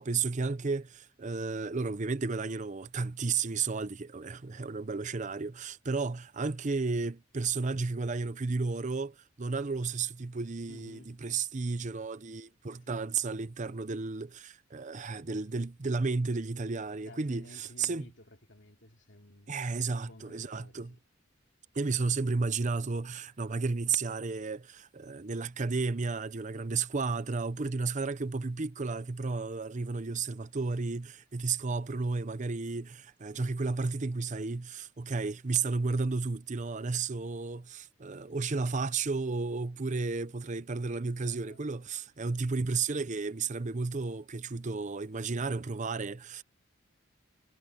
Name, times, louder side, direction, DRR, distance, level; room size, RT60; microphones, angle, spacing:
voice 1, 0.0-18.1 19.5-20.9 21.7-46.4, right 4 dB, 35° right, 0.6 m, -33 dB
voice 2, 10.7-11.1 12.9-13.2 17.1-19.5 19.9-20.9 31.6-31.7 41.2-41.6, left 1 dB, 60° left, 2.7 m, -54 dB
head